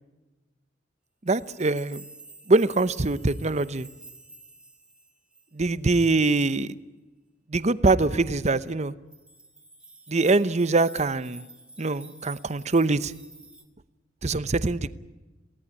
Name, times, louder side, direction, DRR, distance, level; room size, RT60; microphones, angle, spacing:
sound 1, 1.3-5.8 9.1-13.6, right 2 dB, 5° right, 2.4 m, -49 dB
voice 1, 1.3-2.0 2.5-3.9 5.5-6.7 7.5-8.9 10.1-11.4 11.8-13.1 14.2-14.9, right 3 dB, 35° right, 0.8 m, -23 dB
23.0 x 17.5 x 9.7 m
head